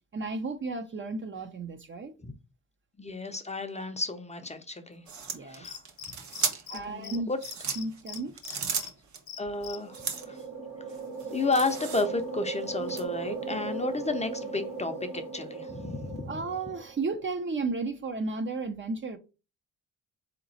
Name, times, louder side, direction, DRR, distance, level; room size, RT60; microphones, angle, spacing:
voice 1, 0.1-2.1 5.3-5.6 6.7-7.3 7.8-8.3 16.3-19.2, right 3 dB, 35° right, 0.7 m, -33 dB
voice 2, 3.0-5.0 5.4-5.8 6.7-7.4 9.4-10.4 11.3-16.4, left 3 dB, 20° left, 0.6 m, -32 dB
sound 1, 5.1-6.8 7.3-9.2 9.9-10.4 10.9-12.3 12.9-13.0, right 6 dB, 60° right, 1.1 m, -35 dB
Cricket, 5.6-6.8 7.0-7.2 7.4-8.9 9.3-9.8, left 9 dB, 65° left, 0.9 m, -41 dB
sound 2, 9.5-17.2, right 4 dB, 80° right, 1.6 m, -38 dB
4.0 x 2.9 x 4.0 m
cardioid pair, 105°, 33 cm